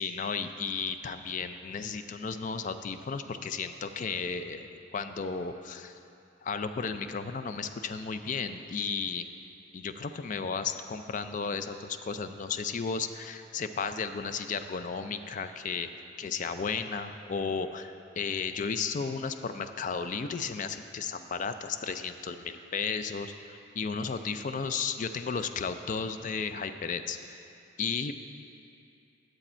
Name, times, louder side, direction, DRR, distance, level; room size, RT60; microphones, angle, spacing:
voice 1, 0.0-5.9 6.4-9.3 9.7-15.9 16.2-27.4 27.8-28.1, left 5 dB, 40° left, 10 dB, 0.4 m, -34 dB
9.8 x 7.7 x 4.3 m, 2.7 s
head